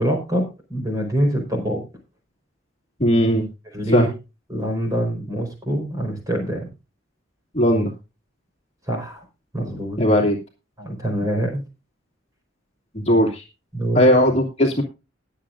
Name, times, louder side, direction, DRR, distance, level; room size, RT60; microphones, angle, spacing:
voice 1, 0.0-1.8 3.7-4.1 4.5-6.7 8.9-9.2 9.5-10.0 10.8-11.6 13.7-14.0, equal, 15° right, 2 dB, 4.6 m, -24 dB
voice 2, 3.0-3.5 3.9-4.1 7.5-7.9 10.0-10.4 12.9-13.4 13.9-14.8, equal, 30° left, -1 dB, 2.5 m, -17 dB
21.5 x 7.6 x 2.6 m, 0.28 s
head